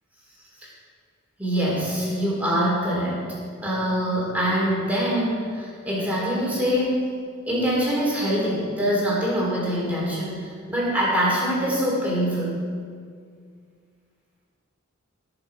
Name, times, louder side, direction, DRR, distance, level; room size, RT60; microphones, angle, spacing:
voice 1, 1.4-3.2 3.6-7.1 7.5-12.6, equal, 5° right, -6 dB, 3.5 m, -24 dB
16.5 x 6.9 x 5.2 m, 2.1 s
head